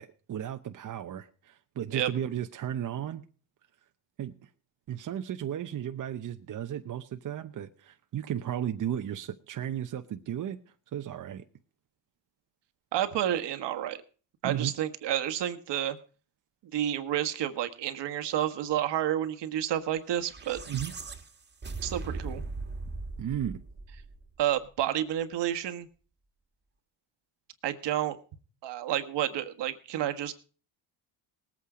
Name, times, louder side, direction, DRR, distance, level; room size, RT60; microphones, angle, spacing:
voice 1, 0.0-3.2 4.2-4.3 4.9-10.6 10.9-11.4 14.4-14.7 20.7-20.9 23.2-23.6, right 10 dB, 45° right, 0.9 m, -34 dB
voice 2, 12.9-14.0 14.4-16.0 16.7-20.6 21.8-22.4 24.4-25.9 27.6-28.2 28.6-30.3, right 11 dB, 65° right, 1.5 m, -30 dB
sound 1, 20.1-24.5, right 3 dB, 25° right, 1.7 m, -39 dB
19.0 x 8.6 x 5.0 m
cardioid pair, 105°, 45 cm